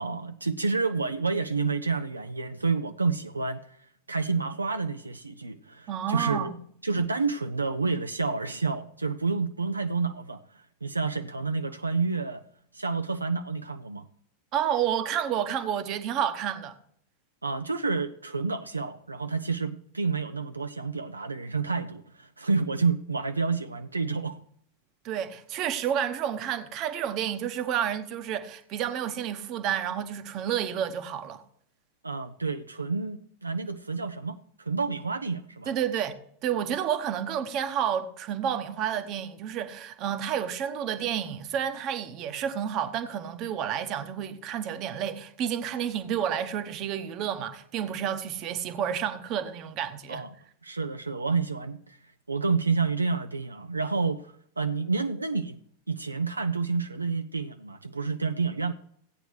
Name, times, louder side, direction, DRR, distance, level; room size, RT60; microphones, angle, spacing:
voice 1, 0.0-3.8 4.1-6.5 6.8-12.4 12.7-14.0 17.4-24.4 32.0-35.7 50.1-50.3 50.6-52.0 52.3-55.6 55.9-58.7, right 4 dB, 80° right, 0.4 m, -29 dB
voice 2, 5.9-6.6 14.5-16.8 25.0-31.4 35.7-50.2, right 9 dB, 40° right, 0.9 m, -30 dB
16.0 x 8.9 x 3.2 m
figure-of-eight pair, 90°, 0 cm